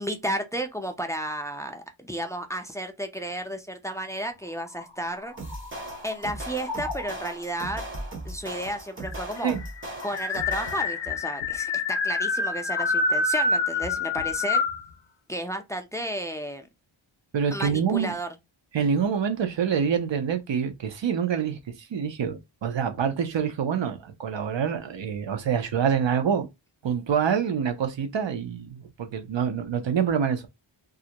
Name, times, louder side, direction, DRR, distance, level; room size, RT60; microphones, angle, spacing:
voice 1, 0.0-5.3 6.0-7.8 8.2-9.5 10.0-14.6 15.3-16.7 17.5-18.3, right 1 dB, 5° left, 0.4 m, -32 dB
sound 1, 4.7-6.1 6.7-7.3 8.3-8.4 8.7-8.8 9.1-14.8, left 3 dB, 60° left, 0.6 m, -27 dB
sound 2, 5.4-11.1, right 1 dB, 25° right, 0.7 m, -38 dB
voice 2, 17.3-18.1 18.7-26.5 26.8-30.5, right 7 dB, 65° right, 0.6 m, -26 dB
2.4 x 2.1 x 2.8 m
wide cardioid pair, 65°, 49 cm